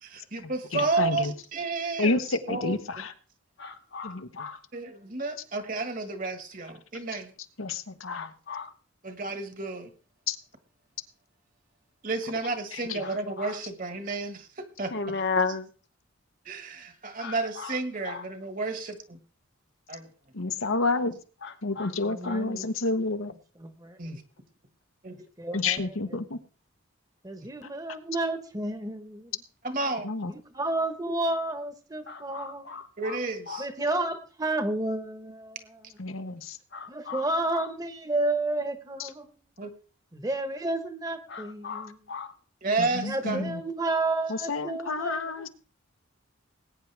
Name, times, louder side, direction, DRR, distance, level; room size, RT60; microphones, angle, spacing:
voice 1, 0.0-2.2 2.5-2.8 4.7-7.3 9.0-9.9 12.0-14.9 16.4-19.2 19.9-20.1 24.0-24.2 25.0-25.2 27.4-27.5 29.6-30.1 33.0-33.7 39.6-39.7 42.6-43.4, right 3 dB, 40° right, 1.6 m, -31 dB
voice 2, 0.7-1.3 2.0-3.1 4.0-4.5 7.6-8.3 10.3-10.4 12.7-13.0 20.3-21.2 21.6-23.3 25.5-26.4 30.0-30.3 36.0-36.6 39.0-39.1 42.8-43.6 44.3-45.5, left 3 dB, 80° left, 1.1 m, -29 dB
voice 3, 3.6-4.6 8.1-8.7 13.0-13.6 14.9-15.7 17.2-17.8 18.0-18.2 21.4-21.9 22.2-22.4 32.1-33.2 33.5-33.6 36.7-37.7 41.3-42.3, left 5 dB, 55° left, 1.1 m, -35 dB
voice 4, 22.0-22.7 25.4-26.0 27.2-29.3 30.5-32.8 33.6-35.8 36.9-39.3 40.1-42.0 43.0-45.5, right 2 dB, 20° right, 1.2 m, -31 dB
20.5 x 9.3 x 3.4 m
head